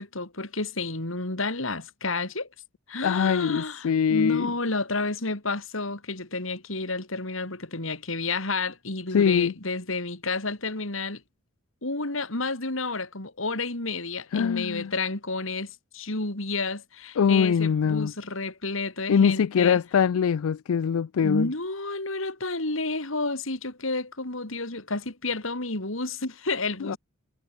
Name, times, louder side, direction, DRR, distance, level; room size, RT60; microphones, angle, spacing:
voice 1, 0.0-2.5 2.9-11.2 11.8-19.8 21.2-27.0, left 3 dB, 70° left, 3.5 m, -30 dB
voice 2, 3.0-4.5 9.1-9.5 14.3-14.9 17.2-18.1 19.1-21.5 26.8-27.0, left 7 dB, 85° left, 0.4 m, -23 dB
head